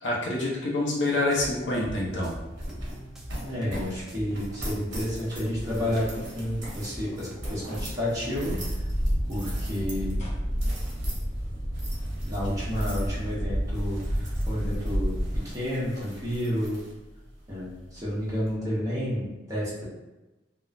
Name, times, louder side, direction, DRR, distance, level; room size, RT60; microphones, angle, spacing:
voice 1, 0.0-2.3, left 2 dB, 85° left, -3 dB, 0.7 m, -27 dB
sound 1, 1.2-8.4, equal, 5° right, 0.4 m, -42 dB
sound 2, 1.4-18.6, right 1 dB, 65° right, 0.8 m, -41 dB
voice 2, 3.4-8.8 9.3-10.1 12.2-16.8 17.5-19.8, equal, 20° right, -8 dB, 0.9 m, -31 dB
sound 3, 8.4-15.4, equal, 40° left, 0.7 m, -29 dB
3.0 x 2.0 x 2.4 m, 1.1 s
head